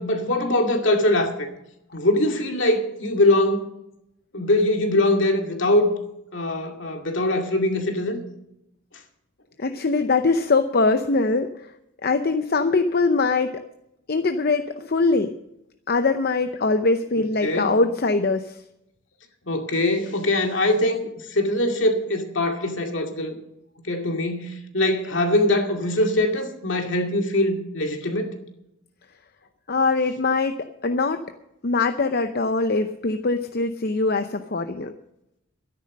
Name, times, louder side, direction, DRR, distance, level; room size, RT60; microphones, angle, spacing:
voice 1, 0.0-1.5 1.9-3.7 4.3-5.9 6.3-8.2 17.4-17.8 19.5-23.4 23.9-28.4, left 1 dB, 70° left, 2.3 m, -22 dB
voice 2, 9.6-11.7 12.0-13.6 14.1-15.3 15.9-18.6 29.7-31.2 31.6-34.9, left 3 dB, 50° left, 0.7 m, -22 dB
13.0 x 10.5 x 6.5 m
head